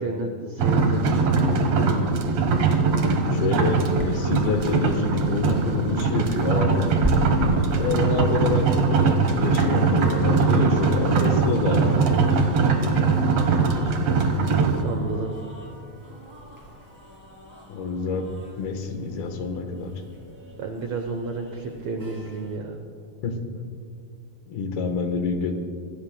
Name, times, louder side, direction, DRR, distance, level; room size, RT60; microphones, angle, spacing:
voice 1, 0.0-1.7 14.8-15.3 20.6-22.8, right 3 dB, 85° right, 4 dB, 1.5 m, -31 dB
sound 1, 0.6-14.8, right 4 dB, 60° right, 1.8 m, -21 dB
voice 2, 3.3-6.9 7.7-12.2 17.7-18.3 18.6-19.9 23.2-23.4 24.5-25.5, left 4 dB, 75° left, 5 dB, 3.1 m, -27 dB
sound 2, 3.7-22.6, right 1 dB, 5° right, 2.6 m, -37 dB
25.5 x 20.0 x 2.3 m, 2.3 s
omnidirectional pair, 4.4 m